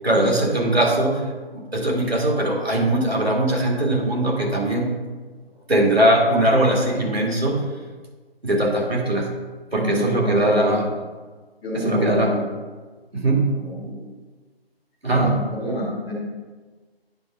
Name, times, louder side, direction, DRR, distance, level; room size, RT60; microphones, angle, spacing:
voice 1, 0.0-4.9 5.7-7.7 8.4-9.3 9.7-10.9 11.7-12.3 13.1-13.6 15.0-15.3, right 1 dB, 80° right, -1 dB, 2.5 m, -20 dB
voice 2, 9.7-10.7 11.6-12.4 13.6-14.0 15.1-16.1, left 1 dB, 5° left, -11 dB, 0.6 m, -27 dB
9.2 x 6.0 x 3.6 m, 1.4 s
figure-of-eight pair, 150°, 31 cm